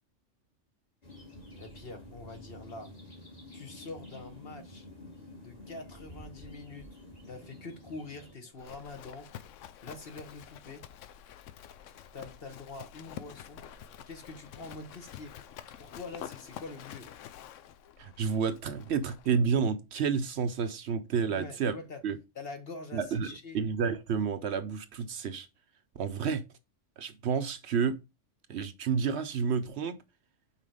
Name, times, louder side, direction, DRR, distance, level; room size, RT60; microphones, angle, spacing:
sound 1, 1.0-8.3, left 1 dB, 30° left, 1.8 m, -49 dB
voice 1, 1.6-2.9 3.5-4.9 5.4-6.9 7.3-9.3 9.8-10.8 12.1-13.6 14.1-15.3 15.8-17.1 21.3-22.0 22.3-23.6, left 3 dB, 50° left, 1.4 m, -45 dB
Livestock farm animals working animals, 8.5-19.3, left 10 dB, 80° left, 0.9 m, -48 dB
voice 2, 18.0-21.7 22.0-22.2 22.9-25.5 26.0-26.4 27.0-28.0 28.5-29.9, right 6 dB, 65° right, 0.9 m, -30 dB
5.7 x 4.5 x 4.9 m
omnidirectional pair, 1.3 m